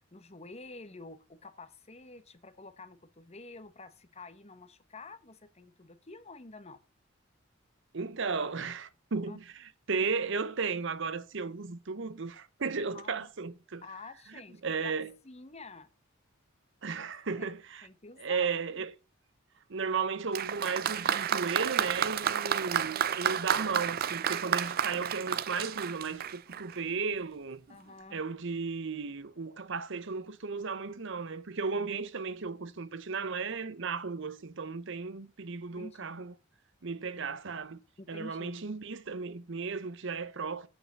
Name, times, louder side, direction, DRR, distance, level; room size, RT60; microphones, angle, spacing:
voice 1, 0.0-6.8 9.3-9.4 12.9-13.3 13.8-14.9 15.2-15.9 17.0-17.1 17.4-17.5 17.8-18.8 27.7-28.2 31.7-32.0 35.8-36.2 38.0-38.5, left 3 dB, 30° left, 1.1 m, -49 dB
voice 2, 7.9-9.4 9.9-13.8 14.6-15.1 16.8-17.9 18.2-18.9 19.7-27.6 28.1-36.3 36.8-37.8 38.1-40.7, right 5 dB, 65° right, 0.8 m, -35 dB
Applause, 20.3-26.8 27.7-27.8, right 9 dB, 45° right, 0.4 m, -31 dB
8.8 x 5.0 x 6.7 m
head